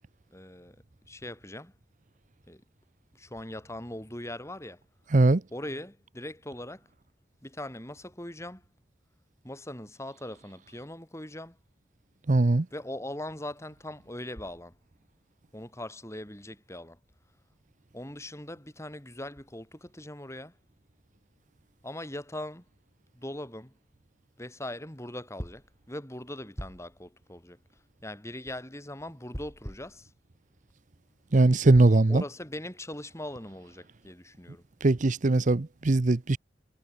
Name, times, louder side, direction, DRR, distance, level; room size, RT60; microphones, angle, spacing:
voice 1, 0.3-0.8 1.1-1.7 2.5-2.6 3.2-4.8 5.5-6.9 7.4-8.6 9.4-11.6 12.7-14.8 15.5-17.0 17.9-20.5 21.8-22.6 23.2-23.7 24.4-27.6 28.0-30.1 32.1-34.6, left 1 dB, 15° left, 5.7 m, -40 dB
voice 2, 12.3-12.7 31.3-32.2 34.8-36.4, right 2 dB, 45° right, 0.7 m, -21 dB
head